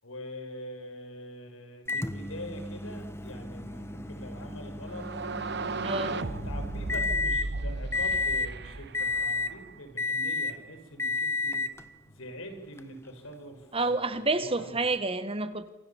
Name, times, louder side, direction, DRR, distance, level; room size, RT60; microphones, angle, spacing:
voice 1, 0.0-5.1 5.8-11.6 12.1-13.6 13.8-14.7, equal, 90° left, 6 dB, 5.7 m, -44 dB
Microwave oven, 1.9-7.5 7.9-8.5 8.9-9.6 10.0-10.6 11.0-11.8 12.8-12.9 14.9-15.0, left 3 dB, 15° left, 1.1 m, -32 dB
sound 1, 4.9-9.7, right 3 dB, 55° right, 1.1 m, -35 dB
voice 2, 5.8-6.2 13.7-15.7, right 3 dB, 30° right, 12 dB, 1.3 m, -29 dB
27.5 x 26.5 x 7.2 m, 0.99 s
head